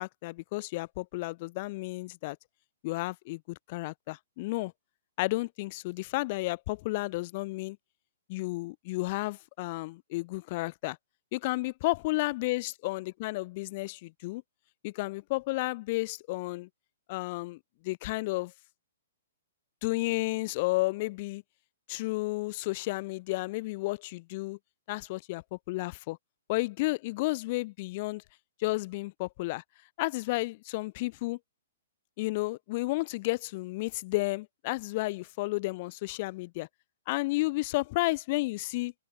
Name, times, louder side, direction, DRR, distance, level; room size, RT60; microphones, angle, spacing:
voice 1, 0.0-2.4 2.8-4.7 5.2-7.8 8.3-11.0 11.3-14.4 14.8-16.7 17.1-18.5 19.8-21.4 21.9-24.6 24.9-26.2 26.5-28.2 28.6-29.6 30.0-31.4 32.2-36.7 37.1-38.9, left 21 dB, 45° left, 1.1 m, -32 dB
open air
hypercardioid pair, 140°, 0 cm